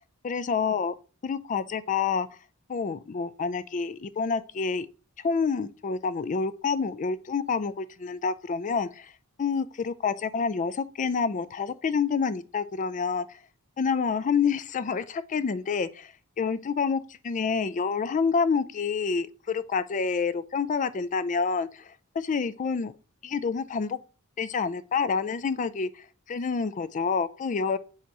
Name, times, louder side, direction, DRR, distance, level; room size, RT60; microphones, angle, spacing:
voice 1, 0.2-0.9 1.2-2.3 2.7-4.9 5.2-9.1 9.4-13.2 13.8-16.1 16.4-21.8 22.2-22.9 23.2-24.0 24.4-25.9 26.3-27.8, left 5 dB, 35° left, 0.4 m, -28 dB
8.4 x 3.0 x 4.6 m
head